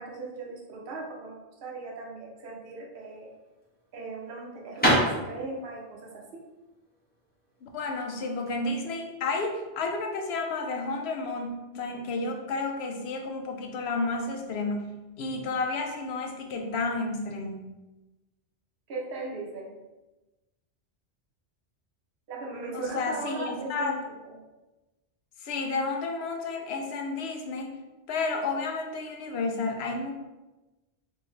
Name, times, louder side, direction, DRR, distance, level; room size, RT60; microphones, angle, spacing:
voice 1, 0.0-3.3 3.9-6.0 6.3-6.4 18.9-19.7 22.3-24.0 24.2-24.4, right 3 dB, 60° right, -3 dB, 0.9 m, -38 dB
sound 1, 2.9-8.6, equal, 10° left, 0.9 m, -29 dB
voice 2, 7.6-14.9 15.2-17.6 22.7-23.9 25.4-27.8 28.1-30.1, left 3 dB, 75° left, 3 dB, 0.8 m, -31 dB
3.7 x 2.6 x 3.1 m, 1.1 s
omnidirectional pair, 1.1 m